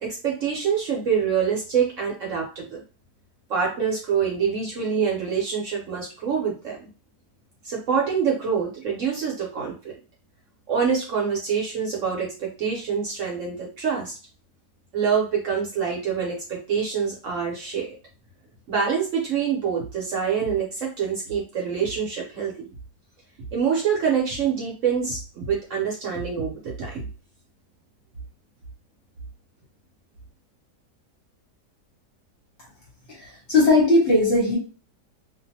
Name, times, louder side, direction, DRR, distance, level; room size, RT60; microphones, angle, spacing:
voice 1, 0.0-2.8 3.5-6.9 7.6-9.9 10.7-14.2 14.9-17.9 18.7-22.7 23.5-27.1, right 6 dB, 60° right, -2 dB, 0.9 m, -26 dB
voice 2, 33.1-34.6, left 2 dB, 50° left, -3 dB, 1.0 m, -19 dB
2.5 x 2.4 x 2.7 m, 0.34 s
omnidirectional pair, 1.7 m